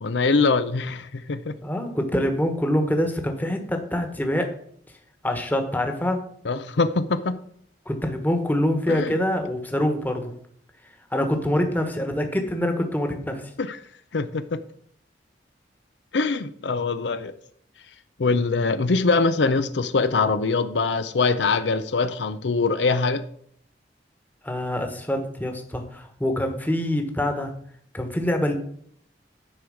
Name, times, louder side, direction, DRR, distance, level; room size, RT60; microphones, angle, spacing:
voice 1, 0.0-1.5 6.4-7.4 8.9-9.2 13.6-13.8 14.1-14.6 16.1-17.3 18.2-23.2, left 4 dB, 80° left, 0.6 m, -23 dB
voice 2, 1.6-4.5 5.2-6.2 7.9-10.3 11.1-13.4 24.4-27.5 27.9-28.5, left 1 dB, 10° left, 1.3 m, -25 dB
10.5 x 4.8 x 6.4 m
head